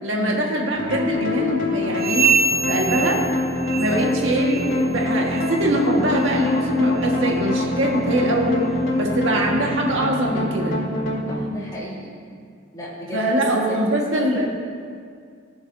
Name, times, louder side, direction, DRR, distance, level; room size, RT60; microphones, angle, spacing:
voice 1, 0.0-3.2 3.7-8.6 9.0-10.8 13.1-14.4, right 1 dB, 80° right, -1 dB, 1.5 m, -23 dB
sound 1, 0.7-11.4, left 2 dB, 85° left, 2.8 m, -25 dB
sound 2, 1.9-4.2 4.4-4.8 5.3-5.5 6.1-6.3 7.0-7.1 7.8-7.9, right 5 dB, 55° right, 1.6 m, -24 dB
voice 2, 11.3-12.1 12.7-14.4, equal, 20° left, -7 dB, 2.9 m, -33 dB
21.0 x 7.1 x 2.7 m, 2.1 s
head